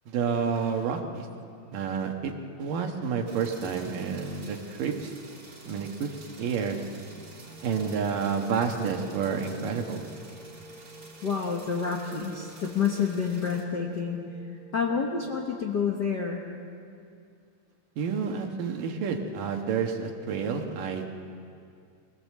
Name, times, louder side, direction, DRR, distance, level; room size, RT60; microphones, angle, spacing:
voice 1, 0.1-1.3 1.7-2.3 2.6-5.1 5.6-6.8 7.6-10.0 18.0-21.1, right 6 dB, 80° right, 3 dB, 3.1 m, -29 dB
sound 1, 3.3-13.6, right 2 dB, 30° right, 3.6 m, -50 dB
sound 2, 6.6-15.5, right 2 dB, 20° left, 1.6 m, -50 dB
voice 2, 11.2-14.2 14.7-16.4, left 6 dB, 60° left, 0 dB, 1.1 m, -28 dB
24.0 x 17.5 x 7.6 m, 2.4 s
omnidirectional pair, 3.8 m